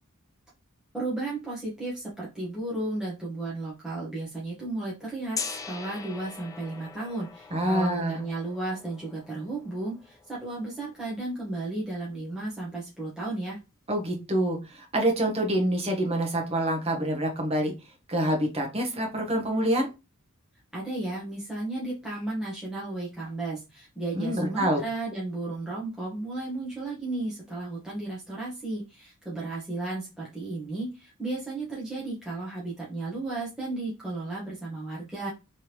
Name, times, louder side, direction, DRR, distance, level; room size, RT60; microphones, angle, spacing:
voice 1, 0.9-13.6 20.7-35.3, right 2 dB, 5° right, -7 dB, 1.1 m, -34 dB
Gong, 5.3-11.3, left 5 dB, 15° left, 0.4 m, -42 dB
voice 2, 7.5-8.2 13.9-17.7 18.1-19.9 24.1-24.8, right 1 dB, 30° right, 1 dB, 1.1 m, -26 dB
3.5 x 3.2 x 2.9 m, 0.27 s
head